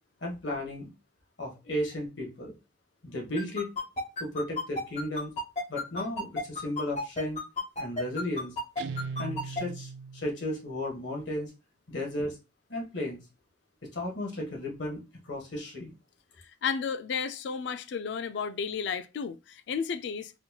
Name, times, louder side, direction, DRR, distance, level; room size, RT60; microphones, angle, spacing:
voice 1, 0.2-0.9 1.4-2.5 3.0-3.7 4.2-5.3 5.7-7.4 7.8-8.5 9.2-11.5 11.9-12.4 12.7-13.2 13.8-15.9, left 1 dB, 85° left, 1.4 m, -34 dB
sound 1, 3.3-9.6, left 2 dB, 40° left, 1.0 m, -31 dB
Guitar, 8.8-10.5, right 5 dB, 70° right, 0.3 m, -38 dB
voice 2, 16.6-20.3, left 6 dB, 70° left, 0.3 m, -32 dB
4.2 x 2.8 x 2.3 m
head